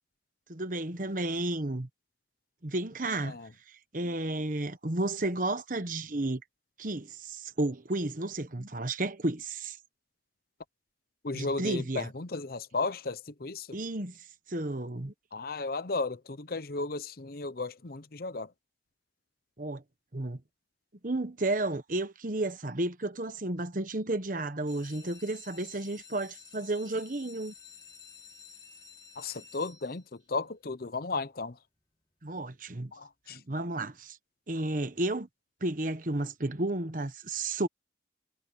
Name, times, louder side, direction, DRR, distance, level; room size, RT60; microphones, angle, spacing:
voice 1, 0.5-1.9 2.6-3.4 3.7-6.4 6.8-9.8 11.3-12.1 13.7-14.2 14.5-15.1 19.6-19.8 20.1-20.4 21.0-27.5 32.2-32.9 33.3-34.2 34.5-35.3 35.6-37.7, right 2 dB, 45° right, 1.3 m, -32 dB
voice 2, 11.2-13.7 15.3-18.5 29.2-30.0 30.3-31.5 32.9-33.4, left 3 dB, 55° left, 0.8 m, -34 dB
sound 1, 24.5-30.3 30.9-31.4 31.8-31.9 32.1-32.2 32.6-32.8, left 6 dB, 20° left, 2.5 m, -52 dB
head